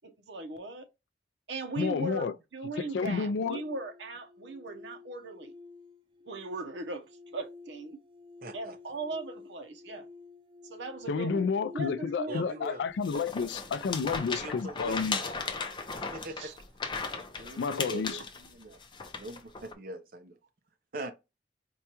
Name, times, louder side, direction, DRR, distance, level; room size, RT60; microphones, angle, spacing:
voice 1, 0.3-0.9 1.5-5.5 6.3-7.1 7.3-8.0 8.5-10.0 10.7-11.5 11.7-12.4 15.3-15.5 16.4-16.5, right 2 dB, 85° right, 0.8 m, -38 dB
voice 2, 1.8-2.3 2.8-3.6 11.1-15.2 17.6-18.2, left 5 dB, 80° left, 0.3 m, -30 dB
sound 1, 3.1-14.1, left 3 dB, 30° right, 0.3 m, -52 dB
voice 3, 8.4-8.8 12.3-12.8 14.1-15.3 16.1-16.3 17.2-18.8 19.2-20.4 20.9-21.1, right 2 dB, 55° right, 0.7 m, -42 dB
sound 2, 13.0-19.7, left 4 dB, 25° left, 0.5 m, -37 dB
4.5 x 2.2 x 2.9 m
head